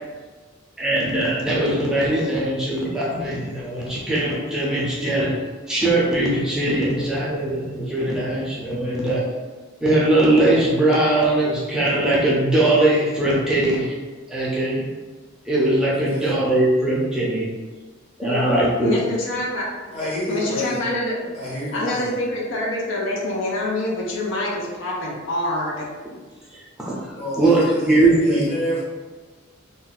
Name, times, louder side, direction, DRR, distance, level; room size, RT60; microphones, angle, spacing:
voice 1, 0.8-5.3 5.7-9.3 9.8-13.9 14.3-14.9 15.5-17.5 18.2-19.0 26.5-26.9 27.4-28.5, right 1 dB, 5° right, -7 dB, 0.5 m, -20 dB
voice 2, 15.9-16.4 19.9-21.0 21.3-22.3 26.8-28.8, equal, 35° left, -6 dB, 0.9 m, -29 dB
voice 3, 18.8-19.7 20.3-21.3 21.7-25.9, left 1 dB, 70° left, -3 dB, 0.6 m, -26 dB
2.5 x 2.1 x 3.9 m, 1.3 s
head